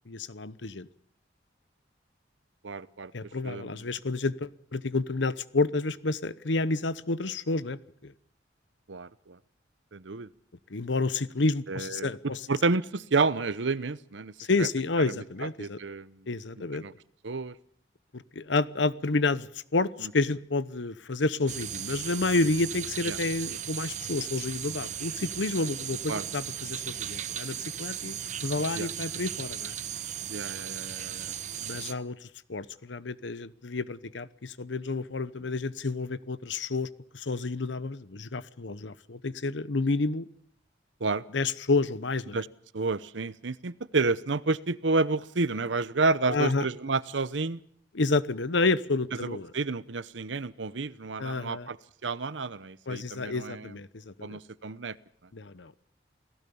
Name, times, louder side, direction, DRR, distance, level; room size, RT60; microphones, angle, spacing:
voice 1, 0.1-0.9 3.1-8.1 10.7-12.4 14.4-15.8 16.3-16.8 18.1-29.7 31.6-36.9 37.1-40.3 41.3-42.4 46.3-46.7 47.9-49.5 51.2-51.7 52.9-54.4 55.3-55.7, left 3 dB, 85° left, 17 dB, 0.9 m, -30 dB
voice 2, 2.6-3.1 3.4-3.8 8.9-9.4 9.9-10.3 11.7-12.1 12.5-14.3 14.6-14.7 15.1-15.2 15.6-16.2 16.8-16.9 17.2-17.5 20.0-20.1 23.1-23.2 26.1-26.2 28.7-28.9 30.3-31.3 41.0-41.2 42.3-42.5 42.7-47.6 49.2-51.8 52.0-53.7 54.2-55.0, right 3 dB, 85° right, 17 dB, 0.9 m, -30 dB
sound 1, 21.5-31.9, right 9 dB, 40° right, 1.1 m, -36 dB
28.5 x 18.0 x 7.1 m, 0.66 s
head